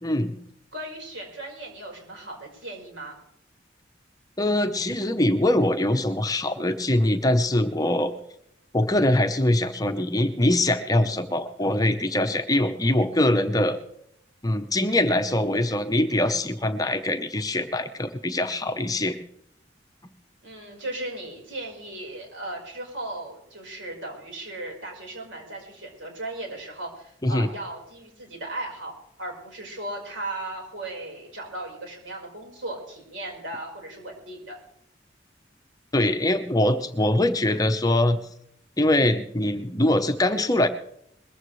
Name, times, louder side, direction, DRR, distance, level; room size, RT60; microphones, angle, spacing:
voice 1, 0.0-0.3 4.4-8.1 8.7-13.8 14.4-19.2 27.2-27.5 35.9-38.2 38.8-40.7, left 1 dB, 20° left, 8 dB, 0.8 m, -23 dB
voice 2, 0.7-3.2 20.4-34.6, right 1 dB, 85° right, 0 dB, 4.7 m, -37 dB
21.5 x 14.5 x 3.2 m, 0.71 s
head